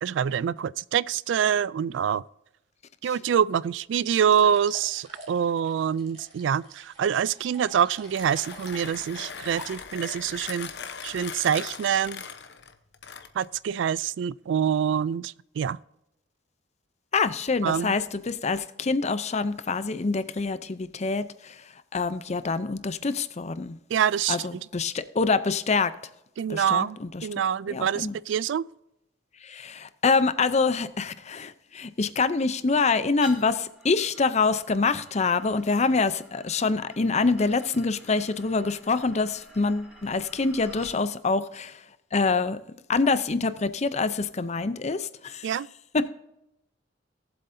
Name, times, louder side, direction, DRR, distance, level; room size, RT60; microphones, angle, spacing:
voice 1, 0.0-2.2 3.0-10.7 11.0-12.2 13.4-15.8 17.6-17.9 23.9-24.4 26.4-27.0 27.2-28.7 45.4-45.7, right 8 dB, 70° right, 0.3 m, -25 dB
sound 1, 3.9-10.1, right 2 dB, 35° right, 2.5 m, -48 dB
Mechanisms, 7.9-13.6, left 7 dB, 60° left, 0.9 m, -40 dB
voice 2, 17.1-21.6 21.9-23.8 24.3-25.9 26.5-27.3 27.7-28.2 29.4-41.8 42.1-42.6 42.9-45.5 45.9-46.1, left 4 dB, 35° left, 0.6 m, -26 dB
sound 2, 33.2-41.0, left 1 dB, 5° right, 3.3 m, -50 dB
18.5 x 7.7 x 2.7 m
head